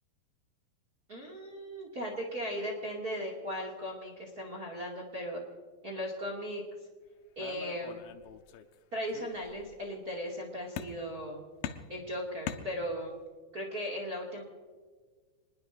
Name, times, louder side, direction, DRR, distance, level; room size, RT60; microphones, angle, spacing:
voice 1, 1.1-5.4 5.8-6.6 7.4-8.0 8.9-11.4 11.9-13.2 13.5-14.4, equal, 30° right, 0 dB, 2.0 m, -37 dB
sound 1, 7.4-8.8 9.1-9.8 10.8-11.3 11.6-13.2, left 9 dB, 75° left, 2.2 m, -42 dB
26.0 x 20.5 x 2.6 m, 1.5 s
omnidirectional pair, 4.9 m